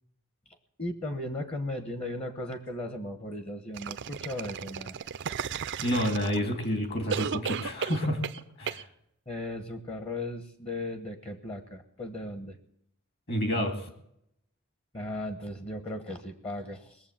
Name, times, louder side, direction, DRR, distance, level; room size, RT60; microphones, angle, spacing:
voice 1, 0.8-4.9 9.3-12.6 14.9-17.1, left 1 dB, 30° left, 8 dB, 1.1 m, -36 dB
sound 1, 3.7-6.6 7.1-8.4 8.7-8.8, right 7 dB, 55° right, 0.5 m, -34 dB
voice 2, 5.8-8.2 8.6-8.9 13.3-13.8, equal, 45° left, 5 dB, 2.4 m, -29 dB
20.0 x 7.4 x 7.4 m, 0.75 s
head